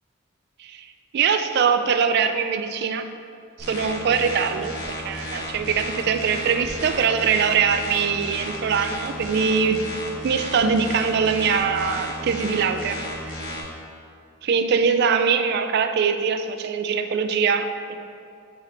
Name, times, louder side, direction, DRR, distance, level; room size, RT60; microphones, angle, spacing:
voice 1, 0.6-3.1 3.6-4.7 5.0-9.8 10.2-13.3 14.4-18.0, right 6 dB, 55° right, 8 dB, 0.3 m, -22 dB
sound 1, 3.6-13.6, left 1 dB, 85° left, 1.1 m, -34 dB
5.6 x 4.2 x 4.3 m, 2.5 s
head